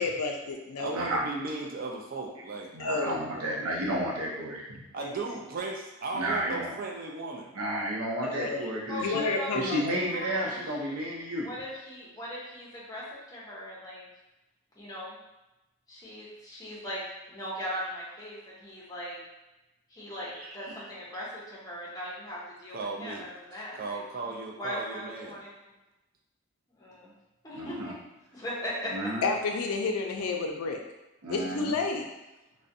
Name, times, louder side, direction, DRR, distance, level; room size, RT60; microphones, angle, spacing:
voice 1, 0.0-1.0 2.8-3.1 5.0-5.1 8.2-8.7 9.0-10.0 29.2-30.8 31.3-32.1, left 4 dB, 85° left, 2 dB, 0.4 m, -30 dB
voice 2, 0.8-3.6 4.9-7.5 22.7-23.3 23.8-25.4, right 3 dB, 40° right, 0 dB, 0.3 m, -36 dB
voice 3, 2.7-4.9 6.1-6.7 7.5-9.2 9.5-11.5 20.6-20.7 27.5-27.9 28.9-29.2 31.2-31.7, right 1 dB, 90° right, -3 dB, 0.6 m, -32 dB
voice 4, 8.9-9.9 10.1-11.0 11.4-14.1 14.8-15.2 15.9-17.0 17.3-19.2 19.9-24.0 24.6-25.7 26.7-27.1 27.4-27.9 28.3-29.1, equal, 15° left, -7 dB, 0.6 m, -39 dB
2.4 x 2.1 x 2.6 m, 0.99 s
head